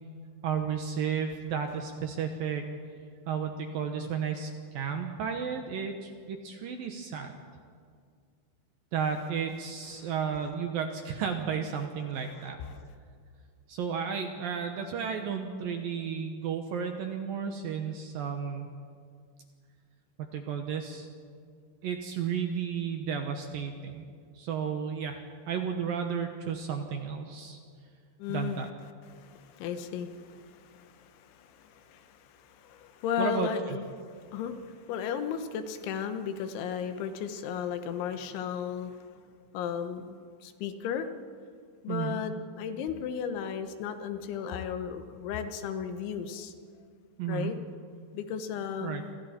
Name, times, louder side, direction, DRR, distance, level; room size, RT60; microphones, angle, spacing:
voice 1, 0.4-2.7 3.3-7.3 8.9-12.6 13.7-18.7 20.2-21.1 21.8-24.0 24.3-25.2 25.5-27.6 28.3-28.7 33.2-33.8 41.9-42.2 47.2-47.5 48.8-49.0, right 7 dB, 70° right, 5 dB, 2.3 m, -33 dB
voice 2, 12.0-12.8 28.2-28.6 29.1-39.0 39.5-41.1 41.8-46.5 47.3-47.6 48.1-49.1, left 7 dB, 85° left, 8 dB, 3.6 m, -35 dB
28.5 x 25.5 x 4.4 m, 2.1 s
omnidirectional pair, 5.3 m